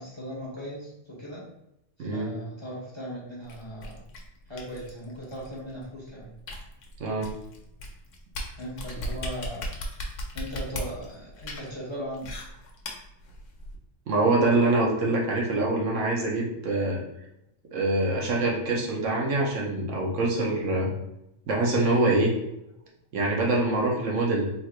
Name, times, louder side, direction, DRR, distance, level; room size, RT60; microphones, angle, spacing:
voice 1, 0.0-1.5 2.0-4.0 4.5-6.3 8.6-9.7 10.3-12.3, equal, 25° left, -7 dB, 1.0 m, -38 dB
sound 1, 3.5-13.8, left 1 dB, 90° left, 1.0 m, -38 dB
voice 2, 14.1-17.0 17.7-20.9 21.5-22.3 23.1-24.7, right 2 dB, 80° right, -2 dB, 1.2 m, -25 dB
3.6 x 2.9 x 2.4 m, 0.83 s
omnidirectional pair, 1.3 m